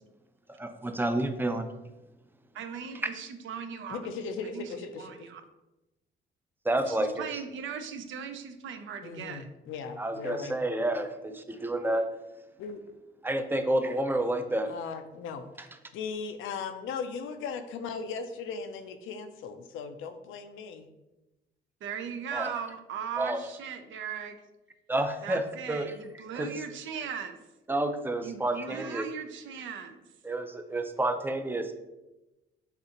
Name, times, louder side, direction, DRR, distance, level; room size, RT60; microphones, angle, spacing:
voice 1, 0.5-1.7 6.6-7.3 10.0-12.1 13.2-14.7 22.3-22.5 23.2-23.4 24.9-25.4 25.7-25.9 26.3-26.5 27.7-29.0 30.2-31.7, right 1 dB, 10° right, 8 dB, 0.4 m, -29 dB
voice 2, 2.5-4.0 4.5-4.7 5.0-5.4 6.9-9.5 21.8-24.4 25.2-27.4 28.2-30.0, right 7 dB, 75° right, 8 dB, 0.5 m, -38 dB
voice 3, 3.9-5.3 9.0-10.6 12.6-12.8 14.7-15.4 15.9-20.9, left 5 dB, 85° left, 8 dB, 0.5 m, -38 dB
6.5 x 2.5 x 2.9 m, 1.0 s
cardioid pair, 90°, 20 cm